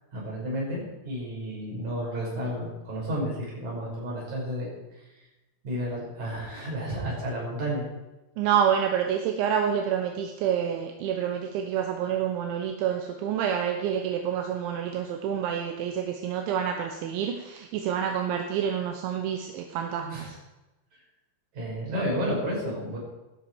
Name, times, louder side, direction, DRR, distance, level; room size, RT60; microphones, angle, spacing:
voice 1, 0.1-4.7 5.6-7.8 20.1-20.3 21.5-23.0, equal, 40° right, -4 dB, 7.0 m, -31 dB
voice 2, 8.4-20.4, right 8 dB, 80° right, 4 dB, 3.3 m, -28 dB
16.0 x 13.0 x 4.8 m, 1.0 s
omnidirectional pair, 5.4 m